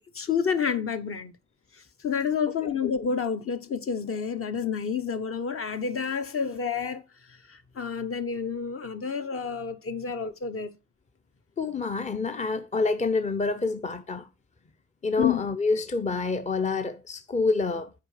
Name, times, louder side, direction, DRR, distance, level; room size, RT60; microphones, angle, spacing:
voice 1, 0.0-1.3 1.7-7.0 7.3-10.8 15.2-15.4, left 6 dB, 45° left, 1.1 m, -29 dB
voice 2, 11.6-14.3 15.0-17.9, left 3 dB, 25° left, 0.7 m, -27 dB
7.8 x 4.7 x 5.0 m
cardioid pair, 90°, 30 cm